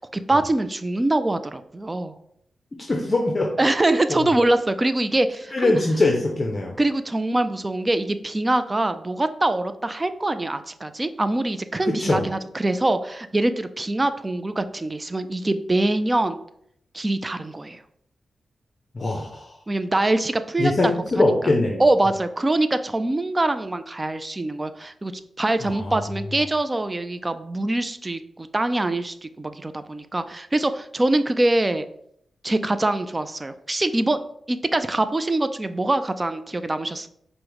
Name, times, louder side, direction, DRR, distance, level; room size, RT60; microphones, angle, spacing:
voice 1, 0.0-2.1 3.6-5.7 6.8-16.4 16.9-17.8 19.7-21.2 21.8-25.1 25.4-31.9 32.4-34.2 34.5-37.1, right 2 dB, 20° right, 10 dB, 0.3 m, -24 dB
voice 2, 2.9-3.5 5.5-6.8 11.9-12.2 18.9-19.5 20.6-21.8 25.7-26.0, left 2 dB, 35° left, 1 dB, 0.6 m, -22 dB
4.8 x 2.1 x 4.6 m, 0.70 s
cardioid pair, 90°, 0 cm